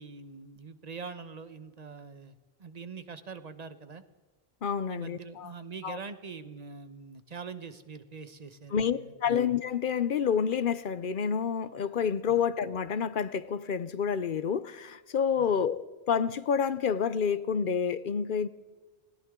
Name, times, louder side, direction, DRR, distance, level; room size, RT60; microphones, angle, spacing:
voice 1, 0.0-4.0 4.9-9.4 12.3-12.4 15.4-15.6, right 5 dB, 40° right, 1.0 m, -44 dB
voice 2, 4.6-5.5 5.8-6.0 8.7-18.5, left 7 dB, 60° left, 0.8 m, -29 dB
20.5 x 17.5 x 3.7 m
omnidirectional pair, 1.1 m